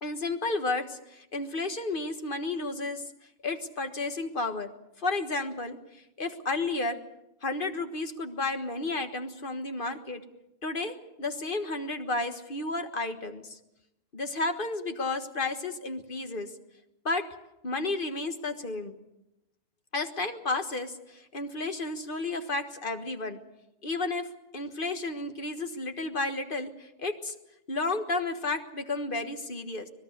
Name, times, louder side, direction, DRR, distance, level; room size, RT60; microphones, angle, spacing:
voice 1, 0.0-3.0 3.4-4.7 5.0-5.8 6.2-7.0 7.4-10.2 10.6-13.6 14.1-16.5 17.0-17.3 17.6-19.0 19.9-23.4 23.8-24.3 24.5-27.3 27.7-29.9, left 3 dB, 40° left, 7 dB, 1.6 m, -32 dB
25.0 x 20.0 x 6.7 m, 0.89 s
omnidirectional pair, 1.4 m